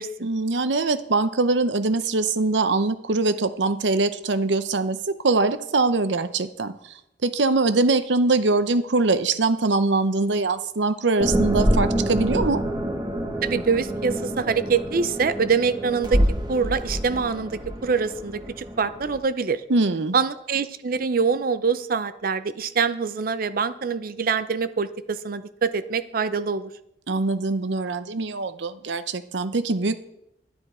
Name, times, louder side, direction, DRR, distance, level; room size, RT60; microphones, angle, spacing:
voice 1, 0.2-6.9 7.2-12.6 19.7-20.2 27.1-30.0, right 3 dB, 85° right, 12 dB, 0.7 m, -23 dB
sound 1, 11.2-19.2, equal, 25° right, 1.2 m, -26 dB
voice 2, 13.4-16.2 16.5-19.6 20.1-26.7, right 5 dB, 55° right, 12 dB, 0.5 m, -25 dB
11.0 x 10.5 x 4.3 m, 0.79 s
head